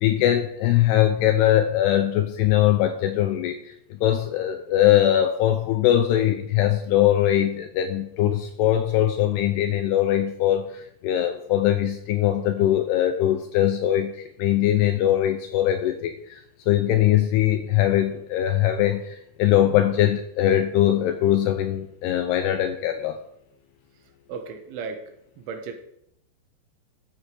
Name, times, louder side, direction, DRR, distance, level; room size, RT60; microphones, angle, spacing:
voice 1, 0.0-16.4 16.7-23.2, left 12 dB, 85° left, 6 dB, 2.4 m, -21 dB
voice 2, 24.3-25.0 25.4-25.8, right 5 dB, 80° right, 5 dB, 3.7 m, -34 dB
12.5 x 7.4 x 5.0 m, 0.76 s
omnidirectional pair, 5.4 m